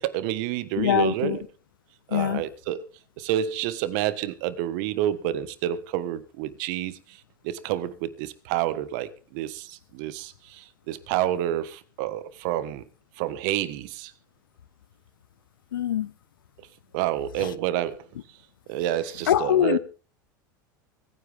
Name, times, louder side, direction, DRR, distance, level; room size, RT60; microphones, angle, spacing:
voice 1, 0.0-1.4 2.1-2.8 3.2-7.2 7.4-12.8 13.2-14.1 16.9-18.0 18.7-19.8, right 12 dB, 65° right, 1.5 m, -29 dB
voice 2, 0.8-1.4 2.1-2.4 15.7-16.1 17.4-17.5 19.3-19.8, left 11 dB, 85° left, 0.9 m, -23 dB
24.5 x 9.8 x 3.6 m
hypercardioid pair, 95°, 11 cm